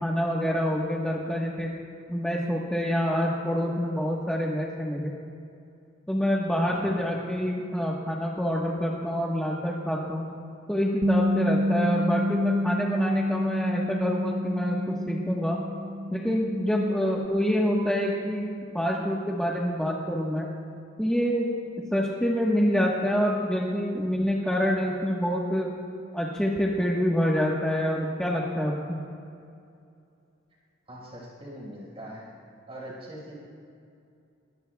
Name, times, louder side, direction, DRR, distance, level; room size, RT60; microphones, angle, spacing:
voice 1, 0.0-1.7 2.1-5.1 6.1-10.3 10.7-15.6 16.1-18.5 18.7-20.5 21.0-21.5 21.9-25.7 26.1-29.0, equal, 5° left, -4 dB, 1.2 m, -26 dB
voice 2, 6.6-7.0 30.9-32.3 32.7-33.3, right 1 dB, 30° right, -6 dB, 5.0 m, -42 dB
Bass guitar, 11.0-17.3, left 1 dB, 55° right, 0.6 m, -28 dB
25.5 x 20.5 x 2.3 m, 2.5 s
head